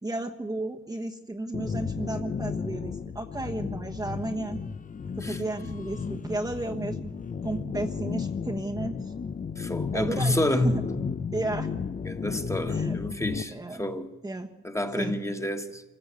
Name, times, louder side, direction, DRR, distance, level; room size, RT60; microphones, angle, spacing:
voice 1, 0.0-4.6 5.2-7.1 7.4-9.1 9.9-10.8 11.3-11.7 12.7-13.0 13.5-13.8 14.2-14.5 15.0-15.1, right 2 dB, 10° right, 1.2 m, -33 dB
sound 1, 1.5-13.4, left 6 dB, 25° left, 0.7 m, -33 dB
voice 2, 9.6-10.8 12.0-14.1 14.6-15.8, left 1 dB, 10° left, 1.7 m, -29 dB
25.0 x 15.0 x 8.3 m
cardioid pair, 90°, 30 cm